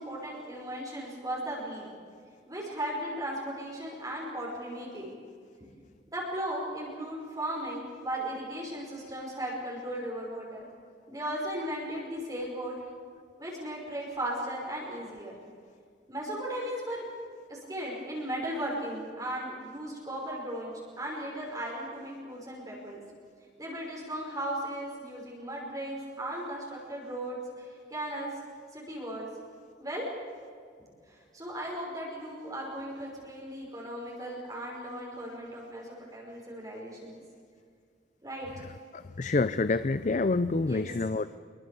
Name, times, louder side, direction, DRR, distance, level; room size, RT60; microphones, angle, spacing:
voice 1, 0.0-1.9 2.5-5.1 6.1-10.7 11.1-12.7 13.4-15.3 16.1-17.0 17.5-23.0 23.6-28.3 28.7-29.3 29.8-30.1 31.1-37.2 38.2-38.7 40.6-40.9, right 1 dB, 20° right, -2 dB, 5.6 m, -36 dB
voice 2, 38.9-41.4, left 3 dB, 40° left, 14 dB, 0.5 m, -27 dB
26.0 x 23.0 x 7.1 m, 2.1 s
head